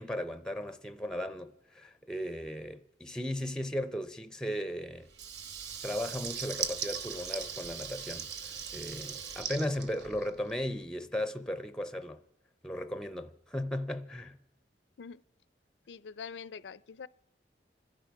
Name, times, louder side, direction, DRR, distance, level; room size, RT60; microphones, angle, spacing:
voice 1, 0.0-5.1 5.8-8.3 8.7-12.2 12.6-14.4, left 1 dB, 5° left, 0.5 m, -36 dB
Water tap faucet / Liquid, 5.1-10.6, right 7 dB, 70° right, 1.1 m, -39 dB
voice 2, 15.9-17.1, left 6 dB, 80° left, 0.5 m, -44 dB
26.5 x 10.5 x 4.7 m
head